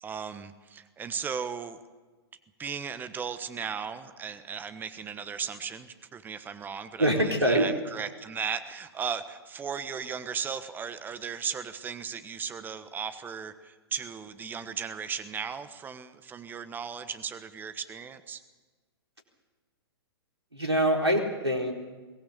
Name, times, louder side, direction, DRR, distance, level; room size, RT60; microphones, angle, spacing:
voice 1, 0.0-1.8 2.6-18.4, right 6 dB, 15° right, 11 dB, 1.2 m, -36 dB
voice 2, 7.0-7.7 20.5-21.7, right 1 dB, 85° right, 2 dB, 4.3 m, -24 dB
23.0 x 18.0 x 6.9 m, 1.3 s
figure-of-eight pair, 110°, 13 cm